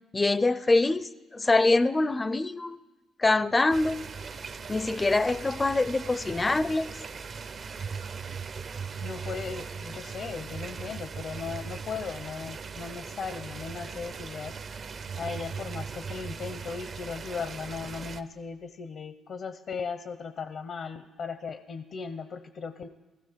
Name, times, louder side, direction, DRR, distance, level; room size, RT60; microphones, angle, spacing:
voice 1, 0.1-2.8 3.2-4.1 4.7-6.9, left 2 dB, 20° left, 16 dB, 0.4 m, -24 dB
sound 1, 3.7-18.2, right 5 dB, 50° right, 0.6 m, -39 dB
voice 2, 9.0-14.5 15.2-22.9, left 5 dB, 60° left, 11 dB, 0.6 m, -37 dB
15.5 x 15.0 x 5.1 m, 1.2 s
cardioid pair, 90°, 0 cm